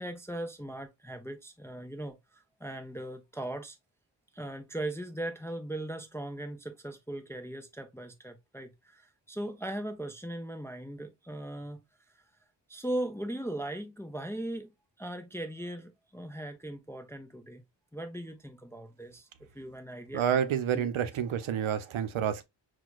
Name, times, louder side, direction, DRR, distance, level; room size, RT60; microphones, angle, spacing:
voice 1, 0.0-3.8 4.3-11.8 12.7-14.7 15.0-17.6 17.9-19.3 19.5-20.9, right 1 dB, 5° left, 0.3 m, -39 dB
voice 2, 20.1-22.4, right 9 dB, 85° right, 0.7 m, -29 dB
6.1 x 2.3 x 2.3 m
wide cardioid pair, 150°, 47 cm